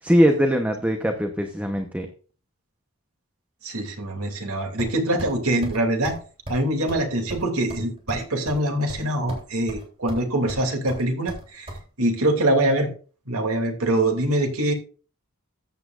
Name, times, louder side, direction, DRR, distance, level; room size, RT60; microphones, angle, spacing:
voice 1, 0.0-2.1, equal, 5° right, 4 dB, 0.9 m, -21 dB
voice 2, 3.6-6.2 6.5-11.7 12.0-12.9 13.3-14.7, right 1 dB, 80° right, 3 dB, 2.6 m, -24 dB
sound 1, 4.8-5.3 5.6-5.8 6.0-6.2 6.5-6.6 6.9-7.0 7.3-8.6 8.9-9.4 9.7-10.2 10.5-11.8, equal, 25° right, 3.4 m, -35 dB
14.0 x 8.7 x 2.5 m, 0.38 s
head